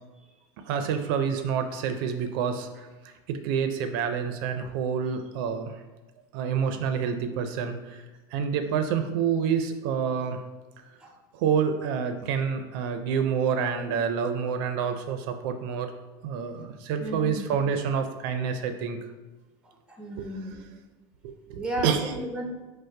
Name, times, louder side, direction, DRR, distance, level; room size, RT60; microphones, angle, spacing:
voice 1, 0.6-5.8 6.3-8.1 8.3-10.4 11.3-15.9 16.2-19.0 20.2-20.3 21.2-22.1, right 7 dB, 70° right, 7 dB, 0.4 m, -28 dB
voice 2, 17.0-17.5 19.9-20.6 21.6-22.4, equal, 5° right, 2 dB, 0.7 m, -33 dB
5.2 x 2.0 x 4.7 m, 1.2 s
supercardioid pair, 140°, 12 cm